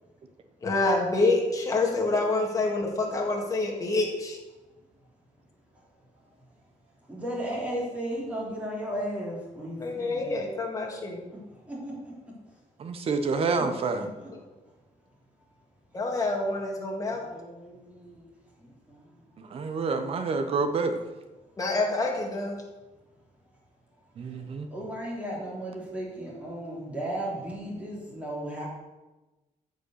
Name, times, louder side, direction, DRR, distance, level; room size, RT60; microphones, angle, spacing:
voice 1, 0.6-4.4 9.8-11.3 14.3-14.4 15.9-17.3 21.6-22.6, left 2 dB, 25° left, 0 dB, 2.1 m, -27 dB
voice 2, 7.1-10.3 11.7-11.9 17.3-18.2 18.6-18.7 24.7-28.7, right 1 dB, 10° right, -4 dB, 3.3 m, -35 dB
voice 3, 12.8-14.1 19.4-20.9 24.2-24.7, right 4 dB, 45° right, 7 dB, 1.1 m, -28 dB
13.5 x 5.3 x 6.5 m, 1.1 s
cardioid pair, 180°, 14 cm